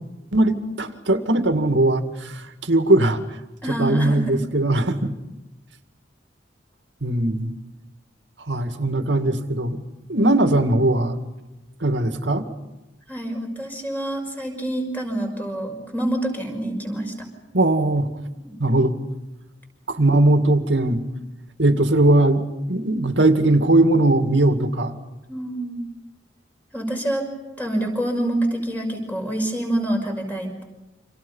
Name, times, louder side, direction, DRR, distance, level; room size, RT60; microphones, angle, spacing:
voice 1, 0.3-3.2 3.7-5.1 7.0-7.6 8.5-9.8 10.1-11.2 11.8-12.4 17.5-18.1 18.6-18.9 19.9-21.0 21.6-22.4 22.7-25.0, right 2 dB, 85° right, 7 dB, 2.3 m, -19 dB
voice 2, 3.6-4.4 10.2-10.4 13.1-17.1 18.5-18.6 25.3-25.8 26.7-27.2 27.6-30.6, right 1 dB, 10° left, 2 dB, 6.1 m, -26 dB
30.0 x 27.0 x 5.6 m, 1.0 s
head